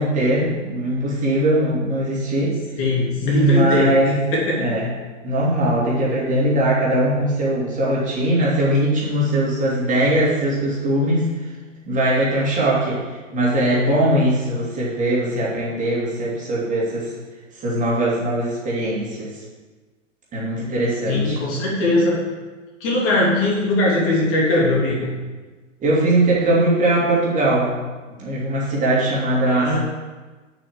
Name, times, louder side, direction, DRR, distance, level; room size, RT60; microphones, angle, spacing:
voice 1, 0.0-2.6 3.2-4.2 4.6-4.9 5.2-11.5 11.9-17.1 17.6-19.3 20.3-21.4 25.8-27.7 28.2-29.8, right 1 dB, 20° right, -6 dB, 3.1 m, -20 dB
voice 2, 2.8-4.7 21.1-22.2 22.8-25.1 29.4-29.8, left 2 dB, 35° left, -4 dB, 2.9 m, -20 dB
7.4 x 6.1 x 7.5 m, 1.3 s
figure-of-eight pair, 100°, 39 cm